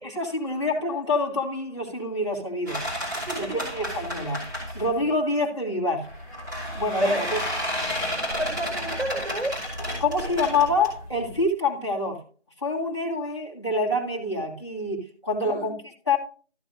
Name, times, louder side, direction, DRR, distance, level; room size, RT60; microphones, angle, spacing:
voice 1, 0.0-2.8 3.4-4.4 4.7-6.1 6.7-7.4 10.0-12.2 12.6-16.2, left 2 dB, 25° left, -4 dB, 1.7 m, -26 dB
sound 1, 2.7-5.0 6.0-11.4, equal, 15° right, 2.8 m, -31 dB
voice 2, 3.3-3.7 7.0-7.3 8.3-9.5 15.4-15.7, right 1 dB, 75° right, 2 dB, 4.7 m, -29 dB
13.0 x 7.0 x 2.5 m, 0.39 s
figure-of-eight pair, 180°, 35 cm